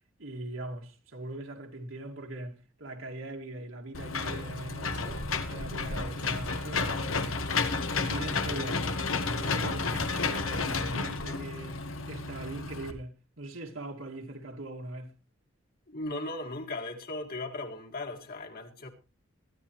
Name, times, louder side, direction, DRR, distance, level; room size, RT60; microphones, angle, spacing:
voice 1, 0.2-5.2 5.5-7.4 7.9-8.9 9.4-15.1, right 1 dB, 70° right, 2.4 m, -41 dB
Engine / Mechanisms, 3.9-12.9, left 4 dB, 85° left, 1.6 m, -31 dB
voice 2, 15.9-18.9, left 2 dB, 50° left, 2.0 m, -37 dB
22.0 x 10.5 x 3.1 m
head